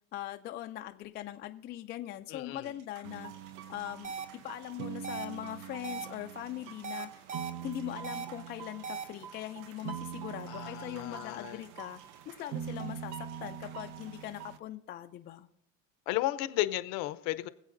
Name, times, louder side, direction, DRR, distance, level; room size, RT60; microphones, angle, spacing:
voice 1, 0.1-3.3 3.7-4.1 4.4-7.2 7.6-12.0 12.3-15.5, left 13 dB, 30° left, 0.4 m, -41 dB
voice 2, 2.3-2.7 10.5-11.7 16.1-17.5, left 16 dB, 65° left, 0.7 m, -34 dB
sound 1, 2.6-14.1, right 6 dB, 55° right, 5.5 m, -59 dB
sound 2, 3.0-14.6, right 9 dB, 70° right, 0.7 m, -44 dB
sound 3, 4.0-4.2 5.0-5.3 5.8-6.0 6.8-7.5 8.0-8.3 8.8-9.0, right 5 dB, 20° right, 0.5 m, -38 dB
24.0 x 8.0 x 2.6 m
cardioid pair, 145°, 37 cm